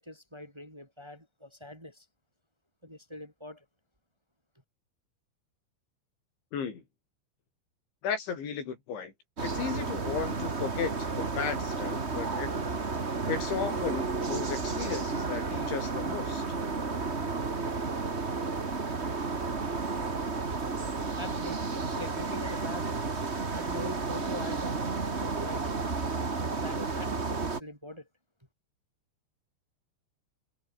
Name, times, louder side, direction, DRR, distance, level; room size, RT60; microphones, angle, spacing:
voice 1, 0.0-2.1 2.8-3.7 21.2-22.9 23.2-25.7 26.4-28.1, left 1 dB, 5° right, 5.3 m, -43 dB
voice 2, 6.5-6.8 8.0-9.1 9.4-12.5 13.3-16.4, left 6 dB, 80° left, 7.2 m, -35 dB
sound 1, 9.4-27.6, right 4 dB, 75° right, 0.6 m, -32 dB
omnidirectional pair, 5.2 m